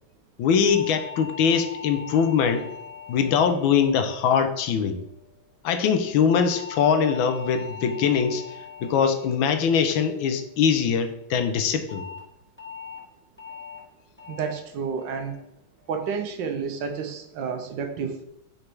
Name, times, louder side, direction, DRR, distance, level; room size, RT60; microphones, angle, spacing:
voice 1, 0.4-2.7 3.1-5.0 5.6-8.4 8.8-12.1, left 7 dB, 80° left, 8 dB, 1.4 m, -22 dB
sound 1, 0.7-5.1 6.3-10.7 11.9-12.2 12.6-13.0 13.4-13.8 14.2-14.6 15.0-15.4 15.8-16.2, left 7 dB, 5° left, 1.7 m, -41 dB
voice 2, 14.3-15.4 15.9-18.2, right 6 dB, 75° right, 6 dB, 1.3 m, -30 dB
5.2 x 4.3 x 4.6 m, 0.79 s
omnidirectional pair, 2.1 m